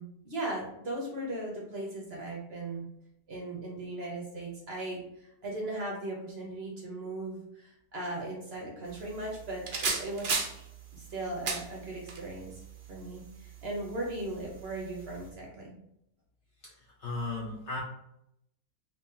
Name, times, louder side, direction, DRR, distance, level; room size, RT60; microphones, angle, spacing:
voice 1, 0.0-2.9 3.3-10.5 10.9-12.5 12.9-15.7, right 2 dB, 50° right, -2 dB, 0.9 m, -38 dB
sound 1, 8.9-15.3, right 4 dB, 70° right, 0.4 m, -38 dB
voice 2, 16.6-17.8, left 2 dB, 65° left, -2 dB, 0.7 m, -36 dB
2.9 x 2.8 x 3.6 m, 0.78 s
omnidirectional pair, 1.7 m